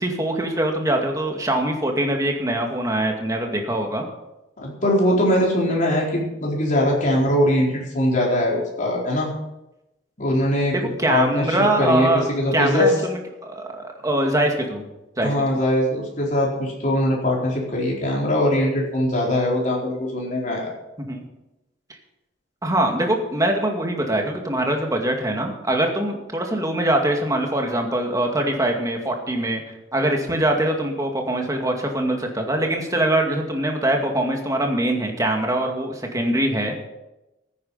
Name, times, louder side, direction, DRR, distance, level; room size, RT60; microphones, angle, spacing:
voice 1, 0.0-4.1 10.7-12.2 12.5-14.9 15.2-15.6 21.1-21.2 22.6-29.6 29.9-36.7, right 1 dB, 20° right, 2 dB, 2.2 m, -23 dB
voice 2, 4.6-9.3 10.2-10.8 11.1-12.9 15.2-20.7, left 1 dB, 45° left, -3 dB, 4.4 m, -21 dB
15.0 x 9.7 x 5.7 m, 0.93 s
head